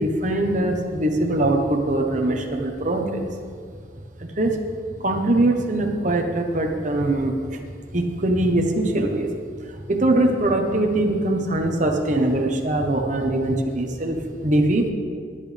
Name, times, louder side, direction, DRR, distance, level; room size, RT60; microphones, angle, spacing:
voice 1, 0.0-3.3 4.2-4.6 5.0-7.6 7.9-9.3 9.7-14.9, right 1 dB, 40° right, 2 dB, 1.2 m, -22 dB
20.0 x 8.5 x 3.5 m, 2.2 s
head